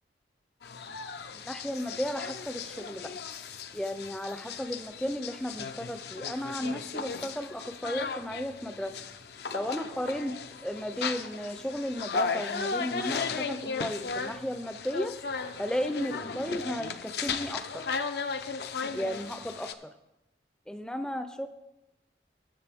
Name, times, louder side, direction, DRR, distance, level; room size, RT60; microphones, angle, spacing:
sound 1, 0.6-19.7, left 5 dB, 65° left, 0.6 m, -36 dB
voice 1, 1.4-3.0 3.7-8.9 9.5-15.1 15.6-17.8 18.9-19.9 20.7-21.5, equal, 5° left, 9 dB, 0.5 m, -34 dB
19.5 x 6.6 x 3.5 m, 0.93 s
head